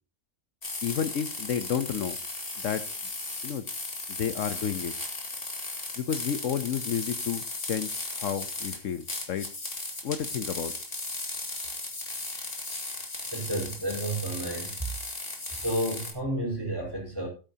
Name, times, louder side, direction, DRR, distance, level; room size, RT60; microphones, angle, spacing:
sound 1, 0.6-16.1, left 2 dB, 45° left, 2.4 m, -36 dB
voice 1, 0.8-2.2 2.6-2.8 3.4-3.7 4.1-4.9 6.0-9.5 10.0-10.7, left 8 dB, 70° left, 12 dB, 1.1 m, -31 dB
voice 2, 13.3-14.9 15.5-17.3, right 1 dB, 15° right, 0 dB, 4.8 m, -31 dB
17.5 x 9.0 x 2.8 m, 0.34 s
omnidirectional pair, 1.4 m